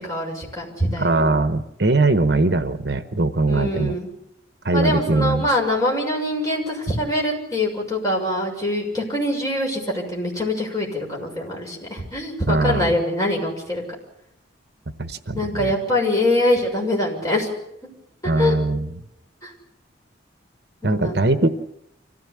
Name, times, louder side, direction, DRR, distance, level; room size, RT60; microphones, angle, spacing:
voice 1, 0.1-1.2 3.5-4.1 4.7-13.8 15.3-17.5 18.2-18.6 19.4-19.5 20.8-21.2, left 1 dB, 20° left, -2 dB, 6.7 m, -24 dB
voice 2, 1.0-4.0 4.6-5.5 12.5-12.9 15.0-15.7 18.2-18.9 20.8-21.5, right 2 dB, 60° right, 10 dB, 1.1 m, -20 dB
25.5 x 16.5 x 8.4 m, 0.81 s
head